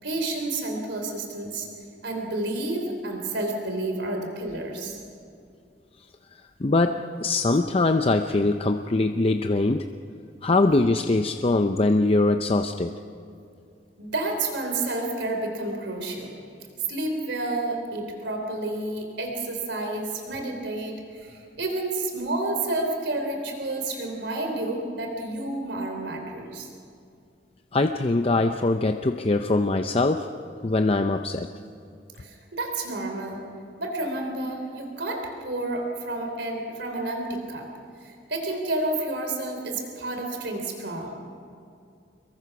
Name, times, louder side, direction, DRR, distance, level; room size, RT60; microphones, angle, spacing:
voice 1, 0.0-1.7 2.0-5.0 14.0-16.3 16.9-26.7 32.2-33.4 33.8-37.7 38.0-41.1, right 2 dB, 80° right, 3 dB, 3.5 m, -30 dB
voice 2, 6.3-9.9 10.4-12.9 27.7-30.3 30.6-31.5, left 2 dB, 35° left, 7 dB, 0.6 m, -22 dB
26.5 x 22.5 x 6.0 m, 2.4 s
head